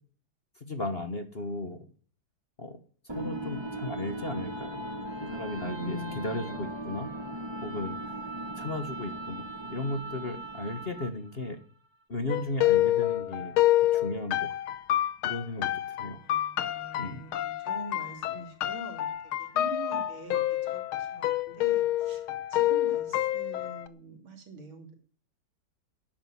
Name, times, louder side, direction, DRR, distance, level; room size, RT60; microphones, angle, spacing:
voice 1, 0.6-1.8 2.6-2.8 3.1-4.7 5.2-7.1 7.6-8.2 8.5-11.6 12.1-13.6 13.9-14.6 15.2-16.2 17.0-17.2, left 2 dB, 35° left, 8 dB, 1.3 m, -35 dB
sound 1, 3.1-11.3, right 1 dB, 15° right, 1.2 m, -38 dB
voice 2, 5.6-6.5 16.2-20.4 20.7-24.9, right 2 dB, 80° right, 5 dB, 3.7 m, -44 dB
sound 2, 12.3-23.9, left 14 dB, 85° left, 1.7 m, -28 dB
12.0 x 9.0 x 9.2 m, 0.43 s
omnidirectional pair, 2.2 m